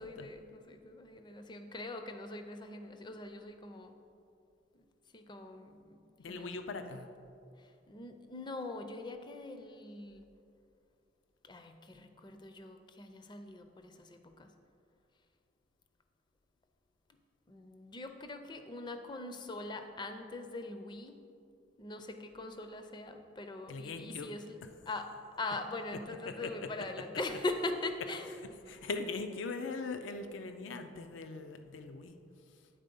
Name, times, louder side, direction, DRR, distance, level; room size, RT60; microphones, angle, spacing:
voice 1, 0.0-4.0 4.7-4.8 5.1-6.0 6.3-6.5 7.6-10.3 11.4-14.5 17.5-21.2 21.8-24.4 24.9-25.1 25.4-28.4, left 2 dB, 25° left, 7 dB, 0.4 m, -42 dB
voice 2, 6.2-7.1 23.7-24.3 26.3-26.7 28.7-32.7, left 3 dB, 80° left, 7 dB, 0.4 m, -41 dB
8.8 x 4.1 x 5.3 m, 2.5 s
head